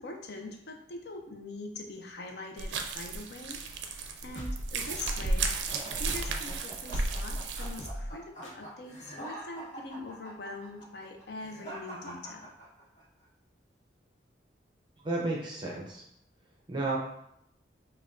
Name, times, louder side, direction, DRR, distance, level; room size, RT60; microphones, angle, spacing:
voice 1, 0.0-3.6 4.2-5.5 6.0-12.5, left 2 dB, 60° left, 3 dB, 0.5 m, -43 dB
sound 1, 2.6-7.9, right 3 dB, 75° right, 0.4 m, -34 dB
sound 2, 4.3-6.4 6.9-7.3 7.6-8.1 8.4-8.5, equal, 90° left, 0.9 m, -38 dB
sound 3, 5.6-13.0, right 1 dB, 40° left, 1.4 m, -45 dB
voice 2, 15.0-16.0 16.7-17.0, right 2 dB, 25° right, -2 dB, 0.5 m, -32 dB
5.3 x 2.3 x 2.5 m, 0.75 s
head